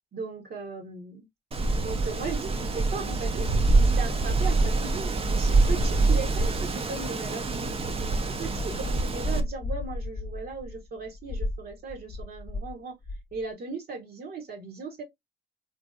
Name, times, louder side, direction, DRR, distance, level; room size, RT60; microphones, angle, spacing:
voice 1, 0.1-1.3 1.8-13.0 13.3-15.0, right 4 dB, 50° right, 0.9 m, -37 dB
Wind, 1.5-9.4, right 3 dB, 30° right, 0.5 m, -25 dB
sound 1, 8.5-12.8 13.0-13.4, left 2 dB, 20° left, 0.7 m, -35 dB
3.2 x 2.7 x 2.3 m
cardioid pair, 90°, 20 cm